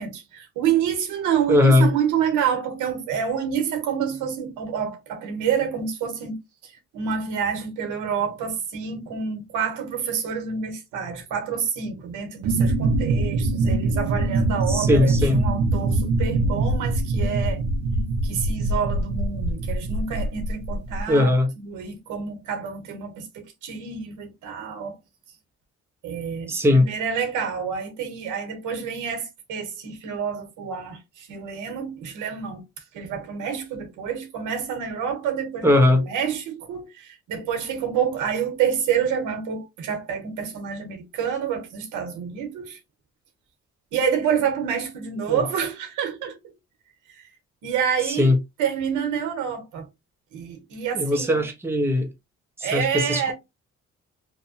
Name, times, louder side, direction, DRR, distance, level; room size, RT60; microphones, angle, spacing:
voice 1, 0.0-17.6 18.2-24.9 26.0-32.6 32.9-42.8 43.9-46.5 47.1-47.2 47.6-49.9 50.3-51.4 52.6-53.3, right 7 dB, 90° right, 0.9 m, -28 dB
voice 2, 1.5-1.9 14.7-15.4 21.1-21.5 26.5-26.9 35.6-36.0 45.3-45.4 48.2-48.4 50.9-52.1 52.6-53.3, left 1 dB, 10° right, 0.6 m, -19 dB
sound 1, 12.4-21.0, right 2 dB, 65° right, 0.6 m, -23 dB
2.7 x 2.1 x 2.5 m
cardioid pair, 90°, 30 cm